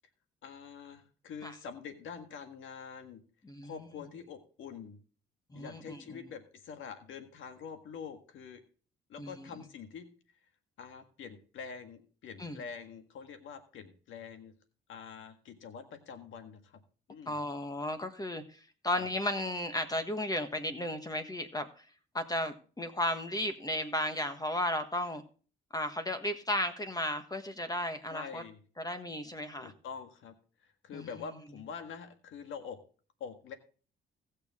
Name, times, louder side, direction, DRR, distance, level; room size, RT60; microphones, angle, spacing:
voice 1, 0.4-3.2 3.6-5.0 5.5-8.6 9.1-10.1 10.8-14.5 14.9-16.8 17.1-17.4 19.0-19.1 28.1-28.6 29.6-30.3 30.6-32.8 33.2-33.5, left 6 dB, 75° left, 7 dB, 1.7 m, -45 dB
voice 2, 5.5-6.2 9.2-9.5 12.4-12.6 17.3-21.8 22.1-25.2 25.7-28.4 28.8-29.7 30.9-31.1, left 1 dB, 20° left, 8 dB, 1.4 m, -34 dB
18.0 x 6.6 x 3.6 m, 0.38 s
cardioid pair, 90°, 20 cm